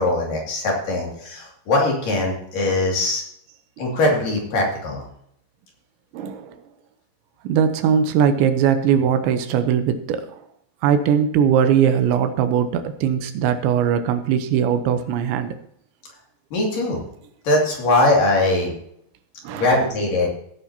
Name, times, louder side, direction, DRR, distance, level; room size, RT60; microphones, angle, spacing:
voice 1, 0.0-3.2 3.8-5.0 16.5-17.0 17.4-18.7 19.5-20.3, left 2 dB, 50° left, -1 dB, 3.8 m, -21 dB
voice 2, 6.1-6.6 7.4-10.2 10.8-15.5 19.4-19.7, right 8 dB, 80° right, 9 dB, 3.1 m, -20 dB
16.5 x 8.8 x 2.9 m, 0.70 s
omnidirectional pair, 5.4 m